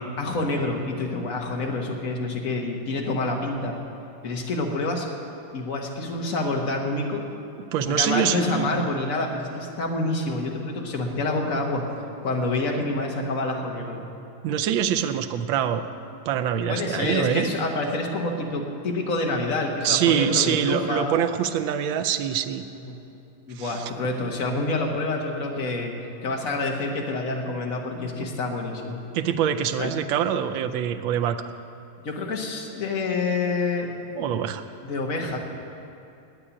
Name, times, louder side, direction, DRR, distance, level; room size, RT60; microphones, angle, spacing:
voice 1, 0.2-3.8 4.2-5.1 5.5-7.2 7.9-11.9 12.2-14.0 16.7-21.2 22.7-23.0 23.5-25.9 26.2-29.0 29.8-29.9 32.0-34.0 34.8-35.4, left 2 dB, 45° left, 1 dB, 1.7 m, -27 dB
voice 2, 7.7-8.8 14.4-15.8 16.3-17.5 19.8-22.6 23.6-23.9 29.1-31.4 34.2-34.6, right 9 dB, 85° right, 7 dB, 1.4 m, -24 dB
10.0 x 8.7 x 9.7 m, 2.8 s
omnidirectional pair, 2.1 m